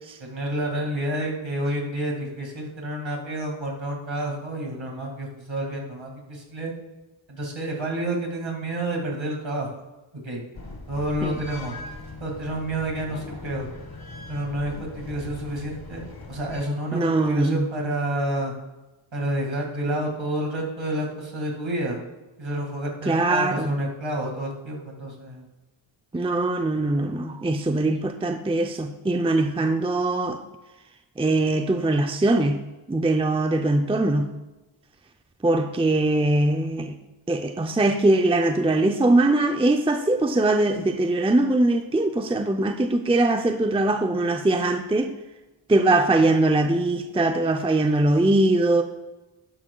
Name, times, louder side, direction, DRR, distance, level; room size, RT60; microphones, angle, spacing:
voice 1, 0.2-6.7 7.3-9.7 10.1-10.4 10.9-11.8 12.2-13.7 14.3-18.5 19.1-22.0 22.4-25.5, right 1 dB, 65° right, 0 dB, 2.2 m, -29 dB
sound 1, 10.5-16.6, left 2 dB, 45° left, 1.4 m, -40 dB
voice 2, 16.9-17.7 23.0-23.7 26.1-30.4 31.2-32.6 32.9-34.3 35.4-37.0 37.3-45.1 45.7-48.8, right 2 dB, 10° right, 6 dB, 0.5 m, -21 dB
12.0 x 10.0 x 2.3 m, 1.1 s
wide cardioid pair, 60°, 50 cm